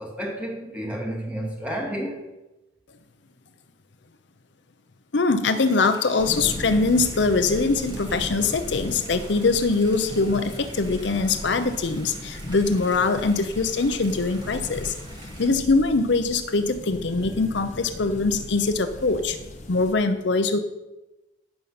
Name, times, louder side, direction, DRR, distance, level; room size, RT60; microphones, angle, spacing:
voice 1, 0.0-2.3, equal, 5° right, -2 dB, 2.3 m, -31 dB
voice 2, 5.1-14.9 15.4-19.4 19.7-20.6, left 3 dB, 65° left, 9 dB, 0.7 m, -22 dB
sound 1, 5.5-15.5, right 2 dB, 25° right, 2.3 m, -46 dB
sound 2, 6.2-19.9, left 1 dB, 40° left, 1.3 m, -38 dB
16.0 x 5.4 x 5.9 m, 1.0 s
head